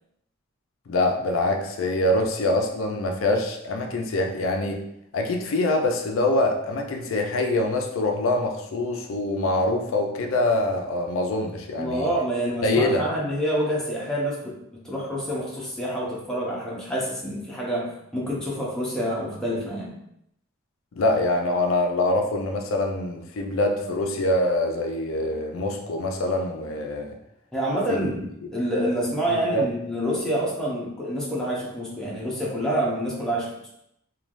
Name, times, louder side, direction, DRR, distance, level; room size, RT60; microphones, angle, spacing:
voice 1, 0.9-4.8 5.1-12.1 12.6-13.0 21.0-27.1 29.3-29.6, left 2 dB, 80° left, 3 dB, 0.4 m, -24 dB
voice 2, 11.8-19.9 27.5-28.3 28.5-33.5, equal, 5° left, -5 dB, 0.6 m, -27 dB
3.1 x 2.2 x 2.5 m, 0.77 s
head